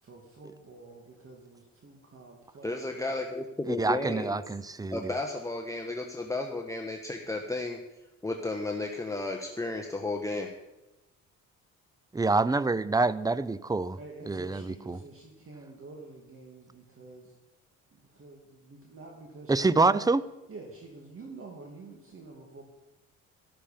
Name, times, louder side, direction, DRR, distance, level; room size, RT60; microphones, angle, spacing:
voice 1, 0.0-2.7 14.0-17.4 17.9-20.1 20.5-22.6, right 3 dB, 45° right, 2.6 m, -48 dB
voice 2, 2.6-4.4 4.9-7.8 8.2-10.5, left 2 dB, 10° left, 1.3 m, -33 dB
voice 3, 3.7-5.1 12.1-14.0 14.3-15.0 19.5-20.2, right 3 dB, 10° right, 0.6 m, -26 dB
13.0 x 12.5 x 5.2 m
cardioid pair, 80°, 31 cm